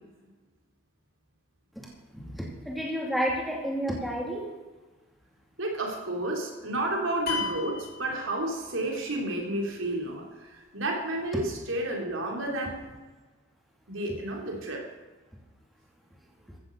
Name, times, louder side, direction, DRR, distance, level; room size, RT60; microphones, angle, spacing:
voice 1, 1.8-4.5, equal, ahead, -2 dB, 2.7 m, -31 dB
voice 2, 5.6-12.9 13.9-14.9, right 1 dB, 75° right, 0 dB, 3.5 m, -31 dB
sound 1, 7.3-9.0, left 4 dB, 45° left, 4.1 m, -34 dB
15.0 x 8.1 x 7.9 m, 1.2 s
head